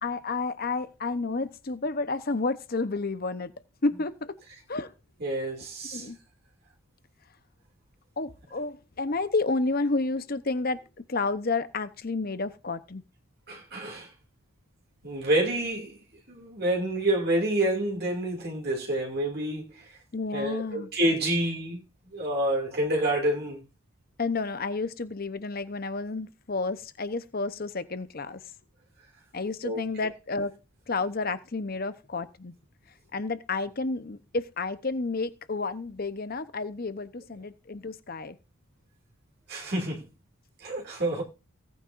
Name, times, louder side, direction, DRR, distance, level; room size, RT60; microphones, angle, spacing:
voice 1, 0.0-3.5 3.8-4.3 4.7-4.9 5.9-6.2 8.2-10.8 11.1-13.0 20.1-20.9 24.2-28.4 29.3-30.5 30.9-32.5 33.1-38.4 40.9-41.2, left 3 dB, 45° left, 0.9 m, -31 dB
voice 2, 5.2-6.1 13.5-14.1 15.0-16.0 16.3-19.9 20.3-21.8 22.1-23.6 29.6-29.8 39.5-40.1 40.6-41.2, right 1 dB, 50° right, 2.5 m, -28 dB
17.5 x 9.4 x 2.6 m
head